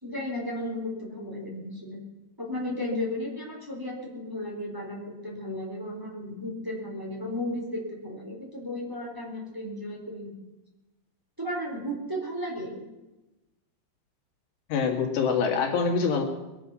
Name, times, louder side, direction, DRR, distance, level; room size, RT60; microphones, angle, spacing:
voice 1, 0.0-2.0 2.4-10.3 11.4-12.8, left 1 dB, 5° right, -3 dB, 3.3 m, -34 dB
voice 2, 14.7-16.2, left 5 dB, 90° left, 2 dB, 4.2 m, -25 dB
21.5 x 10.5 x 6.2 m, 1.0 s
omnidirectional pair, 4.8 m